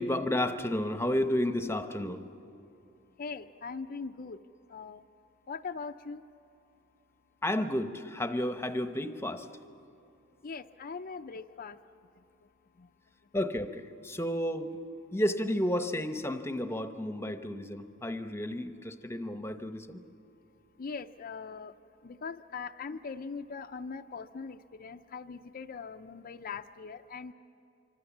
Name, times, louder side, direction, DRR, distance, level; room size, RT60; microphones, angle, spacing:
voice 1, 0.0-2.3 7.4-9.5 13.3-14.8 15.1-20.0, left 1 dB, 10° left, 8 dB, 0.8 m, -32 dB
voice 2, 3.2-4.4 4.7-5.0 5.5-6.2 10.4-11.8 12.8-12.9 20.8-21.7 22.0-27.3, left 5 dB, 45° left, 7 dB, 0.5 m, -41 dB
26.0 x 25.0 x 7.2 m, 2.8 s
head